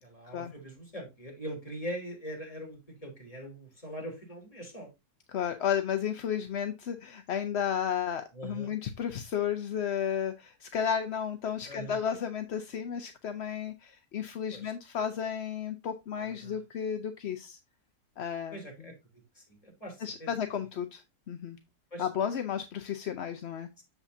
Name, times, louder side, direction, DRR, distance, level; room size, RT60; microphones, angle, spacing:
voice 1, 0.0-4.9 8.3-8.7 11.7-12.0 14.5-14.7 16.2-16.6 18.5-18.9 19.3-20.3 21.9-22.1, right 1 dB, 20° left, 0 dB, 3.4 m, -42 dB
voice 2, 5.3-17.6 18.2-18.9 20.0-21.6 22.0-23.7, left 8 dB, 55° left, 7 dB, 0.8 m, -33 dB
8.2 x 7.1 x 2.7 m, 0.23 s
omnidirectional pair, 1.7 m